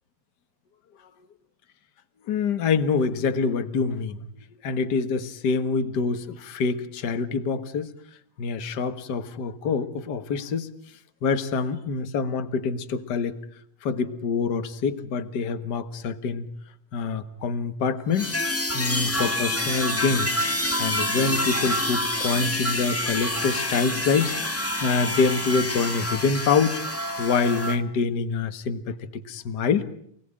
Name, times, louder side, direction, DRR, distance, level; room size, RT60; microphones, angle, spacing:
voice 1, 2.3-4.3 4.6-7.9 8.4-10.7 11.2-13.3 13.8-16.5 16.9-18.4 18.7-20.4 20.8-26.8 27.2-29.9, left 5 dB, 50° left, 9 dB, 1.3 m, -26 dB
sound 1, 18.1-27.8, left 1 dB, 20° left, 0.3 m, -27 dB
29.0 x 19.5 x 8.8 m, 0.68 s
omnidirectional pair, 4.0 m